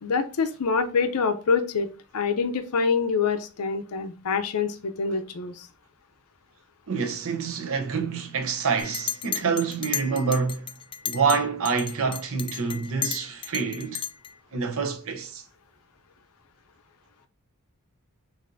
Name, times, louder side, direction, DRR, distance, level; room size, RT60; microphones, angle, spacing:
voice 1, 0.0-5.7, left 5 dB, 75° left, 0.6 m, -26 dB
voice 2, 6.9-10.7 11.0-14.0 14.5-15.4, right 5 dB, 65° right, 0.7 m, -27 dB
Chink clink, 8.8-11.4 11.7-14.3, left 9 dB, 20° left, 0.3 m, -33 dB
6.5 x 2.6 x 2.6 m
head